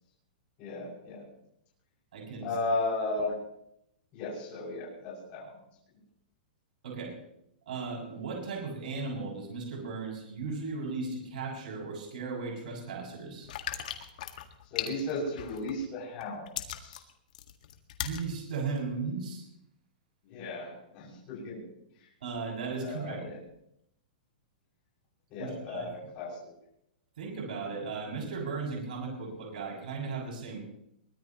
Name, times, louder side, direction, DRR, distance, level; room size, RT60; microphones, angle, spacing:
voice 1, 0.6-1.2 2.4-3.4 4.1-5.5 14.7-16.5 16.8-17.0 20.3-21.6 22.8-23.4 25.3-26.4, left 2 dB, 25° left, -5 dB, 6.8 m, -35 dB
voice 2, 2.1-2.5 6.8-7.1 7.7-13.5 18.0-19.5 22.2-23.2 25.4-26.1 27.2-30.6, right 4 dB, 60° right, -1 dB, 6.8 m, -36 dB
sound 1, 13.4-15.8 16.2-18.2 18.8-18.9, left 10 dB, 55° left, 1.8 m, -37 dB
23.5 x 20.0 x 3.1 m, 0.76 s
hypercardioid pair, 175°, 5 cm